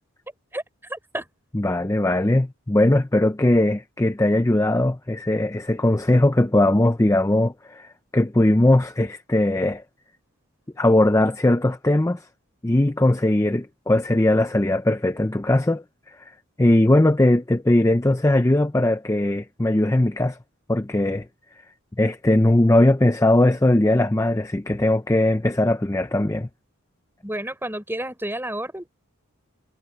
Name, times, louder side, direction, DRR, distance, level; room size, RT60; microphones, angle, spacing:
voice 1, 0.9-1.3 27.2-28.9, right 1 dB, 10° right, 5.5 m, -30 dB
voice 2, 1.5-9.8 10.8-12.3 12.6-20.4 20.7-21.3 22.0-26.5, left 1 dB, 15° left, 0.5 m, -20 dB
head